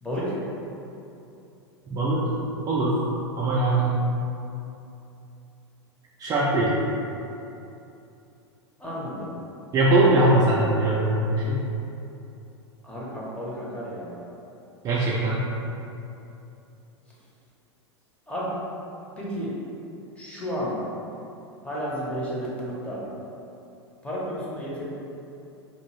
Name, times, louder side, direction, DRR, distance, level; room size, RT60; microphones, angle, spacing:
voice 1, 0.0-0.3 8.8-9.3 12.8-14.2 18.3-18.5 19.2-19.5 20.2-20.8 21.6-23.0 24.0-24.9, equal, 10° left, -7 dB, 0.7 m, -32 dB
voice 2, 1.9-3.0 3.4-4.0 6.2-6.7 9.7-11.6 14.8-15.5, right 2 dB, 25° right, -6 dB, 0.4 m, -21 dB
2.7 x 2.6 x 3.0 m, 2.8 s
hypercardioid pair, 100°, 15 cm